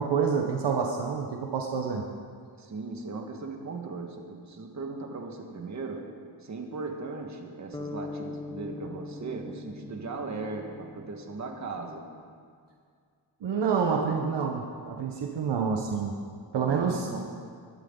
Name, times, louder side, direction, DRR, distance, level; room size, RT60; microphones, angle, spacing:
voice 1, 0.0-2.0 13.4-16.1 16.5-17.1, right 6 dB, 65° right, 2 dB, 1.3 m, -28 dB
voice 2, 2.6-6.1 6.4-12.1 16.6-17.3, right 3 dB, 40° right, 2 dB, 1.8 m, -38 dB
sound 1, 7.7-12.0, left 3 dB, 10° left, 0.6 m, -42 dB
21.5 x 11.5 x 4.0 m, 2.2 s
cardioid pair, 125°, 45 cm